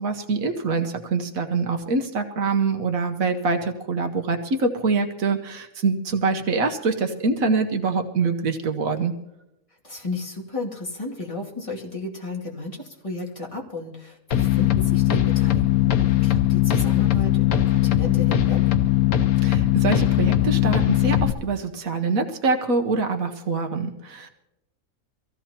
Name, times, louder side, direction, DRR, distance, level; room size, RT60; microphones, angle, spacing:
voice 1, 0.0-9.1 19.4-24.3, right 4 dB, 75° right, 5 dB, 1.5 m, -24 dB
voice 2, 9.8-18.6, left 2 dB, 20° left, -3 dB, 2.6 m, -33 dB
sound 1, 14.3-21.3, left 13 dB, 80° left, 1.3 m, -20 dB
24.0 x 15.5 x 2.9 m, 0.89 s
omnidirectional pair, 1.5 m